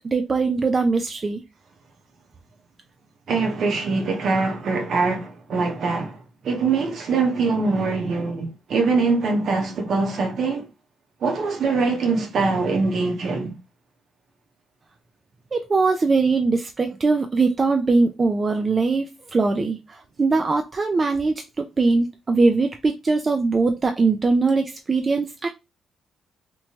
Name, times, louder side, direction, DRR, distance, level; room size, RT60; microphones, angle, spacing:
voice 1, 0.0-1.4 15.5-25.5, right 3 dB, 30° right, 0.3 m, -21 dB
voice 2, 3.3-6.2 6.4-10.6 11.2-13.6, right 4 dB, 65° right, 0.7 m, -23 dB
3.0 x 2.2 x 2.7 m
cardioid pair, 90°, 0 cm